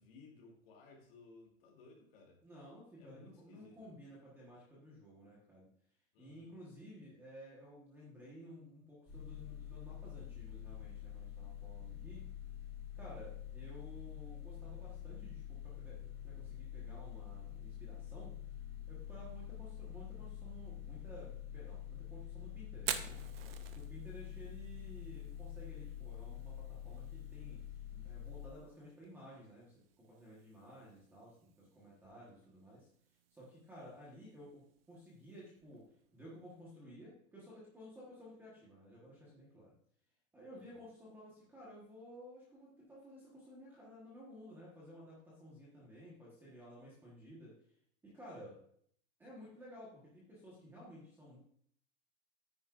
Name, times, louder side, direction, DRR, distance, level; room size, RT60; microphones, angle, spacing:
voice 1, 0.0-2.4 3.0-3.9 6.1-6.5 40.5-40.7 48.3-48.6, left 3 dB, 45° left, -1 dB, 2.6 m, -59 dB
voice 2, 2.4-5.7 6.2-12.3 12.9-18.4 18.9-23.2 23.7-27.6 27.9-32.9 33.3-39.7 40.3-47.6 48.0-48.5 49.2-51.4, equal, 5° right, -6 dB, 1.1 m, -54 dB
sound 1, 9.1-28.5, left 10 dB, 25° left, 2.3 m, -47 dB
Fire, 22.7-36.6, right 9 dB, 45° right, 0.7 m, -50 dB
9.6 x 9.5 x 2.4 m, 0.63 s
supercardioid pair, 180°, 41 cm